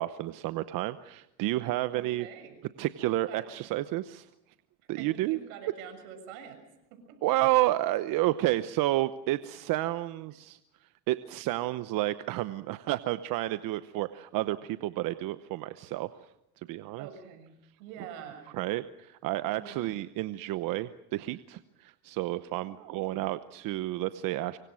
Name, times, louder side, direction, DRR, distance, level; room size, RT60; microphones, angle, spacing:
voice 1, 0.0-2.3 2.8-4.3 4.9-5.4 7.2-10.6 11.1-16.1 16.7-17.1 18.5-24.6, right 16 dB, 50° right, 13 dB, 0.9 m, -30 dB
voice 2, 1.9-2.6 3.0-3.5 5.0-6.6 6.9-7.2 17.0-17.5 17.8-18.5 19.5-19.9 22.5-23.2, right 8 dB, 75° right, 7 dB, 7.0 m, -46 dB
25.5 x 24.5 x 6.3 m, 0.87 s
supercardioid pair, 120°, 42 cm